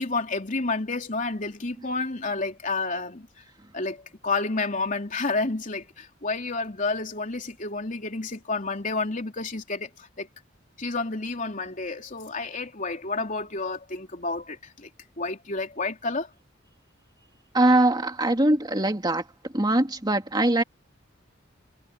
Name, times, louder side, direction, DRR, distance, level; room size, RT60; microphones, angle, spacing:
voice 1, 0.0-3.3 3.7-9.9 10.2-10.3 10.8-14.9 15.2-16.3, left 3 dB, 45° left, 3.4 m, -30 dB
voice 2, 17.5-19.2 19.5-20.6, right 1 dB, 20° right, 2.5 m, -22 dB
head